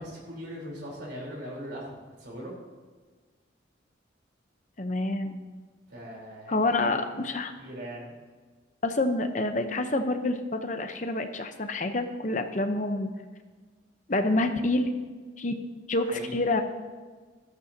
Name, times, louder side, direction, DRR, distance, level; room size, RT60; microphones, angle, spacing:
voice 1, 0.0-2.5 5.9-6.6 6.8-8.1 16.1-16.4, equal, 60° right, -4 dB, 4.0 m, -40 dB
voice 2, 4.8-5.4 6.5-7.5 8.8-13.1 14.1-14.9 15.4-15.5 15.9-16.6, left 2 dB, 40° left, 7 dB, 0.9 m, -27 dB
14.0 x 12.5 x 2.9 m, 1.4 s
head